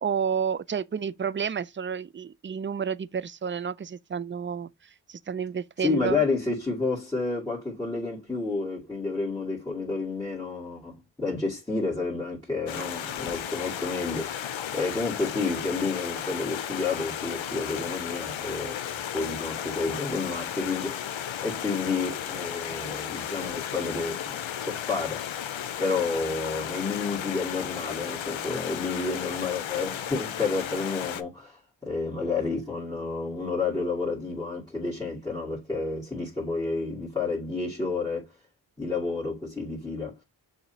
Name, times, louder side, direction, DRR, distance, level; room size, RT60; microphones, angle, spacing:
voice 1, 0.0-4.7 5.1-6.2, right 7 dB, 30° right, 0.4 m, -30 dB
voice 2, 5.8-18.9 19.1-21.0 21.4-25.2 25.8-38.3 38.8-40.1, left 4 dB, 10° left, 2.4 m, -30 dB
Stream, 12.7-31.2, left 10 dB, 85° left, 0.6 m, -34 dB
6.8 x 2.8 x 2.8 m
cardioid pair, 55°, 45 cm